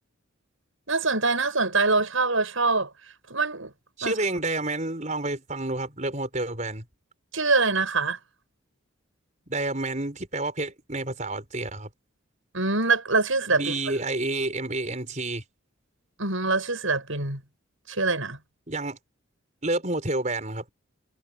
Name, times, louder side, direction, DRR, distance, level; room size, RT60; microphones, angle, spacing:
voice 1, 0.9-2.9 3.3-3.7 4.0-4.1 7.3-8.2 12.5-13.6 16.2-17.4 17.9-18.4, right 3 dB, 70° right, 7.0 m, -24 dB
voice 2, 4.0-6.8 9.5-11.9 13.5-15.4 18.7-19.0 19.6-20.6, right 2 dB, 35° right, 5.4 m, -29 dB
head